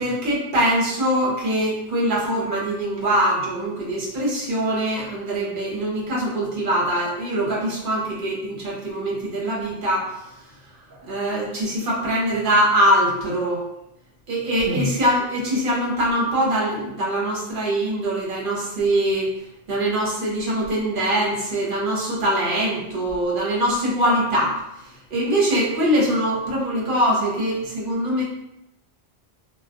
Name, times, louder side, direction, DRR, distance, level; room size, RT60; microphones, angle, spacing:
voice 1, 0.0-10.1 10.9-13.6 14.3-19.3 19.7-24.6 25.1-28.2, right 1 dB, 55° right, -5 dB, 1.0 m, -23 dB
2.3 x 2.2 x 3.6 m, 0.85 s
omnidirectional pair, 1.1 m